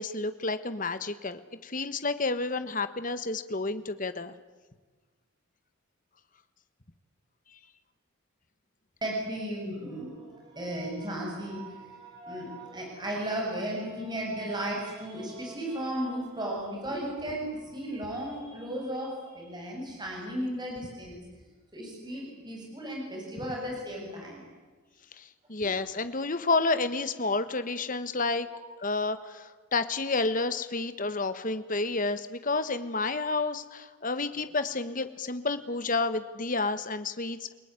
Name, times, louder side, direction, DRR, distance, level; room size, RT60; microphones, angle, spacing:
voice 1, 0.0-4.3 25.1-28.5 28.8-37.5, left 3 dB, 40° left, 11 dB, 1.4 m, -30 dB
voice 2, 9.0-21.2 21.7-24.4 25.6-25.7, right 1 dB, 20° right, -1 dB, 7.5 m, -35 dB
29.0 x 19.0 x 9.8 m, 1.4 s
head